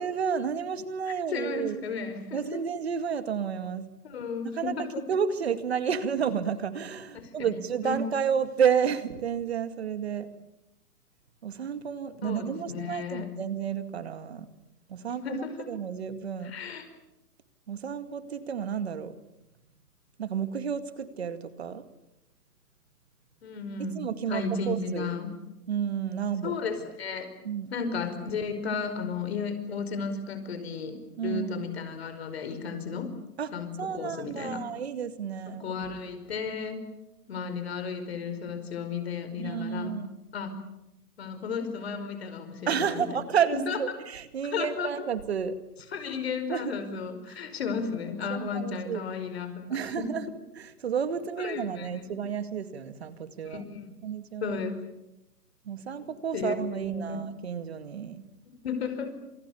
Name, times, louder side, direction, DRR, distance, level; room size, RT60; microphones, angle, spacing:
voice 1, 0.0-1.8 2.3-3.9 4.6-4.7 5.1-10.3 11.4-14.5 14.9-16.5 17.7-19.1 20.2-21.8 24.0-25.1 25.7-26.5 27.4-27.7 31.2-31.6 33.4-33.5 33.8-35.6 39.4-40.1 42.7-45.6 46.5-46.7 48.3-49.1 49.7-50.2 50.6-53.6 54.0-54.6 55.7-58.2, right 7 dB, 40° right, 11 dB, 2.1 m, -31 dB
voice 2, 1.3-2.6 4.0-5.0 7.1-8.0 12.2-13.3 15.1-15.7 16.4-16.9 23.4-24.0 24.3-25.3 26.4-27.3 27.7-33.1 33.5-34.7 35.4-36.9 37.3-40.6 41.2-43.2 43.5-43.8 44.4-45.1 45.9-50.2 51.4-52.1 53.4-53.9 54.4-54.8 55.9-56.0 56.3-57.2 58.4-59.2, left 5 dB, 40° left, 9 dB, 5.0 m, -34 dB
29.5 x 27.5 x 7.1 m, 0.90 s
hypercardioid pair, 175°, 47 cm